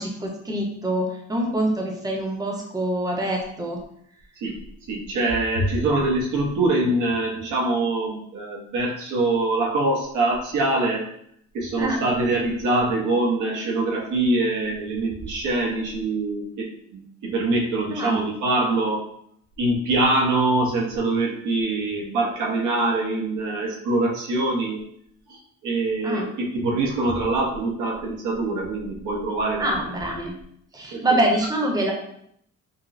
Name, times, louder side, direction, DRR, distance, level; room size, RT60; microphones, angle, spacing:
voice 1, 0.0-3.8 5.9-6.0 11.8-12.0 17.9-18.2 26.0-26.3 29.6-30.4 30.7-31.9, right 1 dB, 15° right, 1 dB, 0.7 m, -25 dB
voice 2, 4.9-11.1 11.5-19.0 19.6-24.8 25.3-29.7 30.9-31.0, right 2 dB, 75° right, -1 dB, 0.9 m, -24 dB
5.2 x 2.0 x 2.6 m, 0.69 s
cardioid pair, 90°, 30 cm